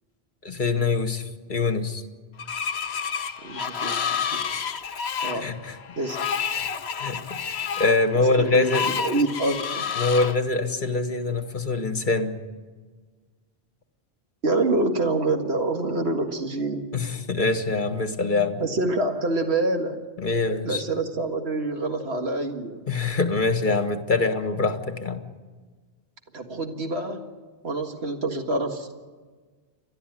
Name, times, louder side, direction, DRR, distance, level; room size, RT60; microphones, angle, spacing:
voice 1, 0.4-2.0 5.3-5.8 6.6-6.7 7.0-8.9 10.0-12.4 16.9-18.6 20.2-20.8 22.9-25.2, left 3 dB, 50° left, 8 dB, 1.7 m, -24 dB
Screech, 2.4-10.3, left 7 dB, 80° left, 1.2 m, -30 dB
voice 2, 3.4-4.4 5.2-5.5 6.0-6.2 8.1-9.9 14.4-16.9 18.6-20.0 20.6-22.8 26.3-27.2 27.6-28.9, right 2 dB, 80° right, 4 dB, 2.1 m, -26 dB
30.0 x 12.0 x 9.3 m, 1.4 s
omnidirectional pair, 1.1 m